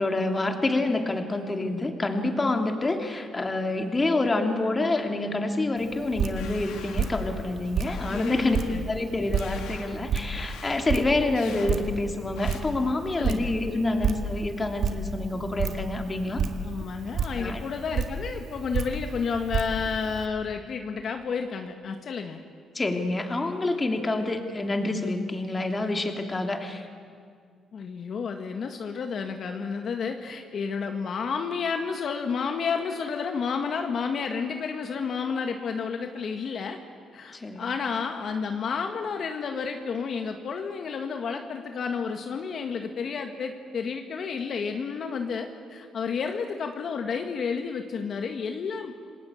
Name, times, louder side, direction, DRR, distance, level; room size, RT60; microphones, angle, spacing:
voice 1, 0.0-8.6 8.9-16.4 17.4-17.6 22.7-26.9 37.3-37.7, left 2 dB, 25° left, 4 dB, 2.9 m, -27 dB
Drip, 5.8-20.3, right 5 dB, 70° right, 1.9 m, -32 dB
sound 1, 6.4-7.5 7.9-8.8 9.4-10.0 10.4-10.8 11.4-11.7 12.4-12.6, left 7 dB, 90° left, 2.7 m, -45 dB
voice 2, 8.1-9.3 13.2-13.5 16.6-22.4 27.7-36.8 37.1-48.9, left 5 dB, 55° left, 5 dB, 1.8 m, -31 dB
28.0 x 20.0 x 8.6 m, 2.2 s
cardioid pair, 90°, 0 cm